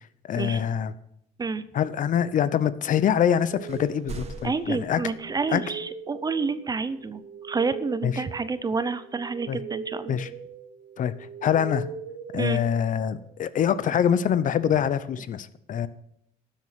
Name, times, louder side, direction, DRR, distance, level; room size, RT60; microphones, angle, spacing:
voice 1, 0.3-0.9 1.7-5.0 5.5-5.6 8.0-8.2 9.5-9.6 10.1-10.3 11.0-11.1 11.4-11.9 12.3-15.9, left 9 dB, 50° left, 15 dB, 0.7 m, -24 dB
sound 1, 3.2-3.4 3.7-5.7, right 3 dB, 40° right, 1.4 m, -42 dB
sound 2, 3.5-13.2, right 6 dB, 60° right, 1.7 m, -41 dB
voice 2, 4.4-10.2 12.4-12.6, right 4 dB, 25° right, 14 dB, 0.7 m, -29 dB
12.5 x 7.6 x 5.8 m, 0.72 s
cardioid pair, 110°, 17 cm